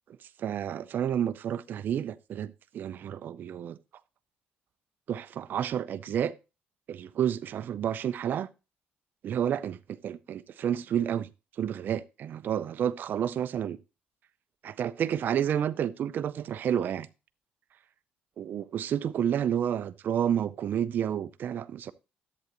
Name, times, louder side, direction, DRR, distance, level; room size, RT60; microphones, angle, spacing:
voice 1, 0.4-3.8 5.1-6.3 6.9-8.5 9.2-9.8 10.0-11.3 11.6-13.8 14.6-17.1 18.4-21.9, right 9 dB, 55° right, 0.4 m, -30 dB
11.0 x 7.7 x 2.9 m
cardioid pair, 110°, 4 cm